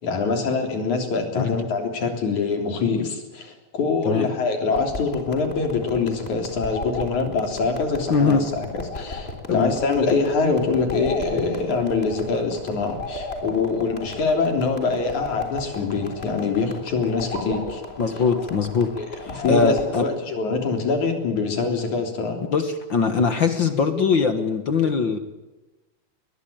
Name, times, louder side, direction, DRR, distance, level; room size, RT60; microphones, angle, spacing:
voice 1, 0.0-8.7 8.9-17.8 18.9-22.4, left 4 dB, 70° left, 4 dB, 4.9 m, -24 dB
sound 1, 4.7-20.1, left 2 dB, 20° left, 3.6 m, -35 dB
voice 2, 8.1-8.4 9.5-9.7 18.0-18.9 19.2-20.0 22.5-25.2, left 5 dB, 45° left, 9 dB, 1.8 m, -21 dB
21.5 x 21.0 x 9.0 m, 1.1 s
omnidirectional pair, 3.6 m